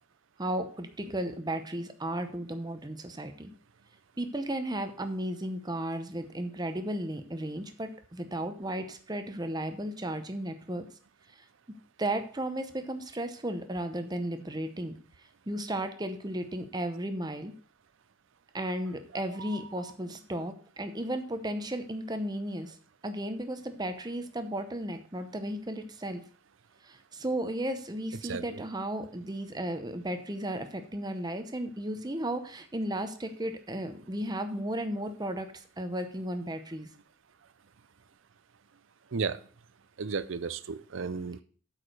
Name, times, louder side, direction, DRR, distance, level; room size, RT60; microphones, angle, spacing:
voice 1, 0.4-3.5 4.2-10.9 11.3-11.5 12.0-14.9 15.5-17.5 18.5-22.8 23.0-26.2 26.8-36.9, right 1 dB, 20° right, 8 dB, 0.8 m, -34 dB
voice 2, 40.0-41.4, right 5 dB, 60° right, 15 dB, 0.5 m, -33 dB
8.3 x 4.9 x 6.4 m, 0.43 s
head